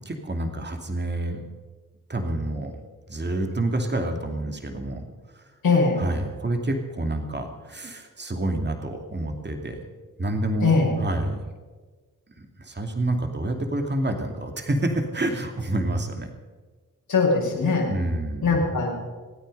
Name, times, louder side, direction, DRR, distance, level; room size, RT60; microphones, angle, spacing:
voice 1, 0.0-1.4 2.1-2.7 3.1-5.0 5.4-5.5 6.0-9.8 10.2-10.7 11.0-11.4 12.6-16.3 17.9-18.6, right 1 dB, 30° right, 4 dB, 2.5 m, -28 dB
voice 2, 5.6-6.0 10.6-10.9 17.1-17.9 18.4-18.9, left 4 dB, 75° left, -4 dB, 5.8 m, -21 dB
26.5 x 9.2 x 5.4 m, 1.4 s
cardioid pair, 55°, 36 cm